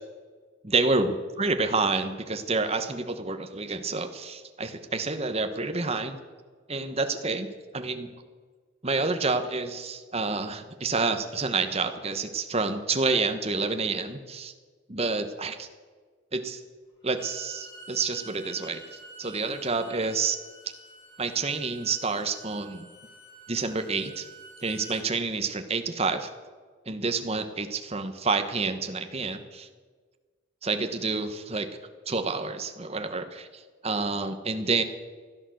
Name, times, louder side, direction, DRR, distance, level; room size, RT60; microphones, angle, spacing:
voice 1, 0.6-6.2 6.7-8.1 8.8-14.5 14.9-15.7 16.3-16.6 17.0-20.4 21.2-22.9 23.5-24.3 24.6-26.3 26.9-29.7 30.6-31.7 32.1-34.8, right 3 dB, 30° right, 7 dB, 1.2 m, -28 dB
Bowed string instrument, 17.0-25.1, right 2 dB, 25° left, 6.7 m, -48 dB
16.0 x 11.0 x 7.8 m, 1.5 s
head